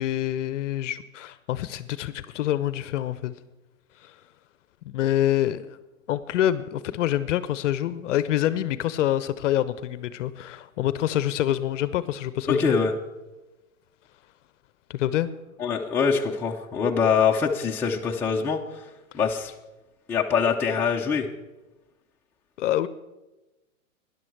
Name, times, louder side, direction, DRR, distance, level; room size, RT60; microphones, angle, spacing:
voice 1, 0.0-3.3 4.0-4.1 4.9-5.6 6.1-12.7 14.9-15.3 22.6-22.9, left 12 dB, 60° left, 15 dB, 0.6 m, -26 dB
voice 2, 12.5-12.9 15.6-18.8 19.1-19.5 20.1-21.3, left 6 dB, 5° left, -1 dB, 0.5 m, -24 dB
12.5 x 10.5 x 4.6 m, 1.0 s
hypercardioid pair, 125°, 43 cm